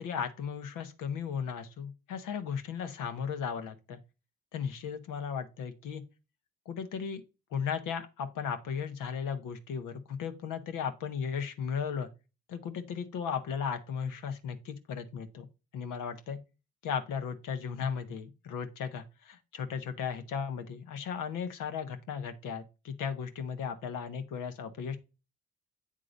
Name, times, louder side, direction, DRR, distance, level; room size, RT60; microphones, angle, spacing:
voice 1, 0.0-4.0 4.5-6.0 6.7-7.2 7.5-12.1 12.5-15.5 15.7-16.4 16.8-25.0, left 7 dB, 80° left, 1.1 m, -36 dB
8.3 x 3.8 x 5.1 m
supercardioid pair, 55°, 31 cm